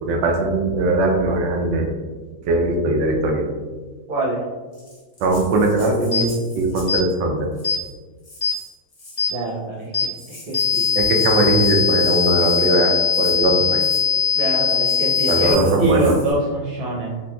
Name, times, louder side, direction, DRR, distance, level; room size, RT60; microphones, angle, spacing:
voice 1, 0.0-1.8 2.5-3.4 5.2-6.3 6.5-7.5 11.0-13.8 15.3-16.1, right 2 dB, 90° right, 1 dB, 1.3 m, -20 dB
voice 2, 4.1-4.4 9.3-10.8 14.3-17.2, right 2 dB, 40° right, -5 dB, 0.9 m, -24 dB
Rattle (instrument), 4.7-7.0 7.5-7.9 8.2-9.3 9.8-9.9 10.1-12.8 13.1-13.4 13.8-14.1 14.7-16.3, left 1 dB, 50° left, 1.3 m, -42 dB
sound 1, 6.1-6.3 6.9-7.0 7.6-7.8 8.4-8.6 9.2-9.3 9.9-10.1 10.5-15.5, left 7 dB, 35° left, 0.8 m, -20 dB
4.0 x 2.5 x 2.3 m, 1.3 s
omnidirectional pair, 1.9 m